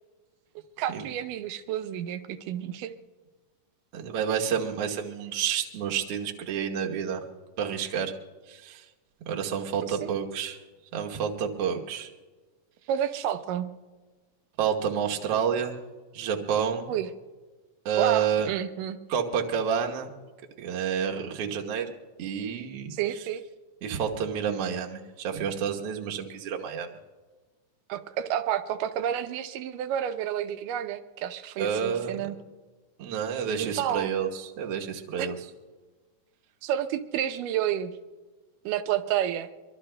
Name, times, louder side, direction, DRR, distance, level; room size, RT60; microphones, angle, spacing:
voice 1, 0.8-2.9 10.0-10.1 12.9-13.7 16.9-17.1 18.0-19.0 22.9-23.4 27.9-32.4 33.5-34.1 35.2-35.3 36.6-37.9 38.7-39.5, right 10 dB, 90° right, 10 dB, 2.3 m, -30 dB
voice 2, 3.9-7.3 7.6-8.1 8.5-8.8 9.3-10.6 10.9-12.1 14.6-15.8 16.1-16.9 17.9-18.5 19.1-20.1 20.6-21.9 22.2-22.9 23.8-26.9 31.6-32.2 33.0-35.4, right 7 dB, 60° right, 1 dB, 1.7 m, -29 dB
24.0 x 24.0 x 2.2 m, 1.3 s
omnidirectional pair, 3.7 m